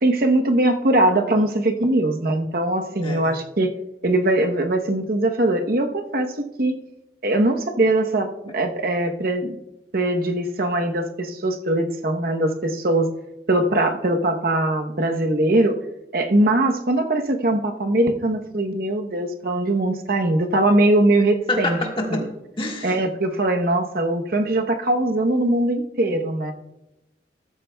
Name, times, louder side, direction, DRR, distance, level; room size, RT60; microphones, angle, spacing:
voice 1, 0.0-3.7 4.0-6.8 7.2-9.6 9.9-13.1 13.5-15.8 16.1-21.8 22.8-26.5, right 1 dB, 55° right, 5 dB, 0.9 m, -21 dB
voice 2, 3.0-3.4 21.5-22.3 22.6-23.0, left 2 dB, 30° left, 1 dB, 1.7 m, -26 dB
13.5 x 13.0 x 2.3 m, 0.93 s
head